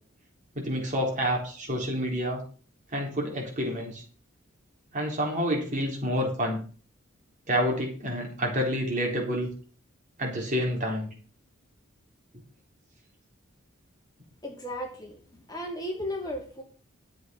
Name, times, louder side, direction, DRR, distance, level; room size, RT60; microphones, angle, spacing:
voice 1, 0.5-2.4 2.9-4.0 4.9-6.6 7.5-9.5 10.2-11.1, equal, 35° right, 0 dB, 4.0 m, -28 dB
voice 2, 14.4-15.2 15.5-16.6, left 1 dB, 20° left, 0 dB, 2.7 m, -35 dB
12.0 x 8.0 x 5.3 m, 0.40 s
head